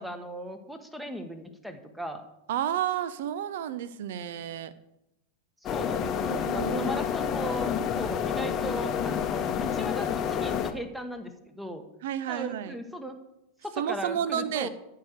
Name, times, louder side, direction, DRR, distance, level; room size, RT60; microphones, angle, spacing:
voice 1, 0.0-2.2 5.7-11.8 12.3-13.2 13.6-14.7, equal, 5° right, 8 dB, 1.1 m, -37 dB
voice 2, 2.5-4.7 6.3-7.0 12.0-12.7 13.8-14.7, right 10 dB, 55° right, 16 dB, 0.7 m, -31 dB
sound 1, 5.7-10.7, left 8 dB, 30° left, 0.9 m, -29 dB
13.5 x 4.8 x 6.5 m, 0.87 s
figure-of-eight pair, 90°, 0 cm